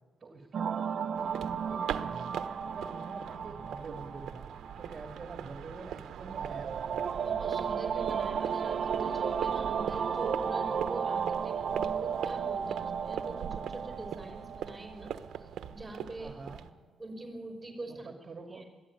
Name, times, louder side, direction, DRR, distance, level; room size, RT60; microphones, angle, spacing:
voice 1, 0.2-2.3 2.6-4.4 4.8-7.0 16.2-16.7 17.9-18.6, right 3 dB, 35° right, 4 dB, 2.4 m, -46 dB
sound 1, 0.5-15.8, right 7 dB, 55° right, 1.0 m, -34 dB
sound 2, 1.2-16.7, right 9 dB, 75° right, 1.2 m, -42 dB
voice 2, 7.2-15.1 15.4-16.3 17.0-18.1 18.5-18.6, right 2 dB, 15° right, 3 dB, 5.2 m, -43 dB
21.5 x 14.5 x 9.8 m, 1.3 s
cardioid pair, 90°, 0 cm